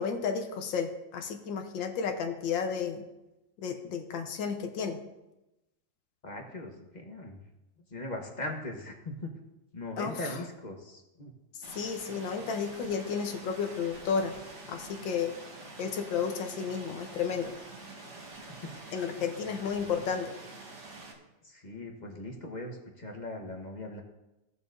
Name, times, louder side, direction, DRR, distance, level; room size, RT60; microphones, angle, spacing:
voice 1, 0.0-3.0 3.6-5.0 10.0-10.4 11.7-14.3 14.7-15.3 15.8-17.5 18.9-20.3, left 6 dB, 75° left, 5 dB, 1.6 m, -32 dB
voice 2, 6.2-7.4 7.9-9.3 9.7-11.3 18.2-19.2 19.8-19.9 21.1-21.2 21.4-24.0, left 1 dB, 30° left, 2 dB, 0.9 m, -40 dB
sound 1, 11.6-21.1, right 2 dB, 55° right, 2.3 m, -46 dB
16.5 x 6.9 x 2.6 m, 0.96 s
omnidirectional pair, 2.1 m